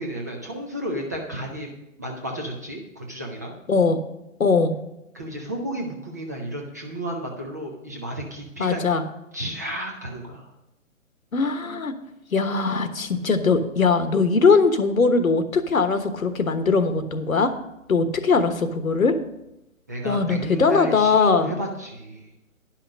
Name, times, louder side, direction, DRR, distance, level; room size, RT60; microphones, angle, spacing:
voice 1, 0.0-1.7 2.0-3.6 5.1-8.8 9.3-10.5 19.9-22.3, right 1 dB, 15° right, 0 dB, 0.5 m, -32 dB
voice 2, 3.7-4.0 4.4-4.7 8.6-9.0 11.3-11.9 12.3-17.5 17.9-19.2 20.0-21.5, left 4 dB, 80° left, 10 dB, 1.3 m, -20 dB
10.5 x 5.8 x 6.3 m, 0.89 s
figure-of-eight pair, 140°, 41 cm